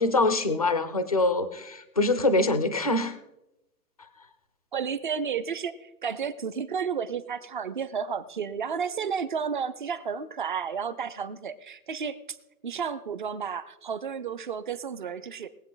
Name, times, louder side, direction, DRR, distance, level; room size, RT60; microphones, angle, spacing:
voice 1, 0.0-3.2, left 2 dB, 25° left, 11 dB, 0.4 m, -24 dB
voice 2, 4.7-12.4 12.6-15.5, right 6 dB, 30° right, 14 dB, 0.5 m, -32 dB
21.0 x 8.0 x 3.9 m, 0.92 s
hypercardioid pair, 160°, 49 cm